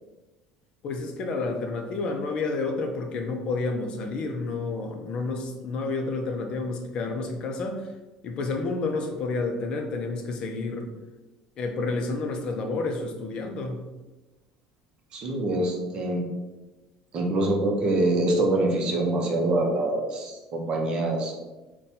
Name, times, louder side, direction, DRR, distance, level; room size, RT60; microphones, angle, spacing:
voice 1, 0.8-7.9 8.2-10.9 11.6-13.9, left 3 dB, 45° left, 3 dB, 0.4 m, -30 dB
voice 2, 15.1-16.3 17.1-21.4, right 2 dB, 40° right, 1 dB, 0.6 m, -25 dB
4.0 x 2.2 x 2.6 m, 1.1 s
cardioid pair, 140°, 2 cm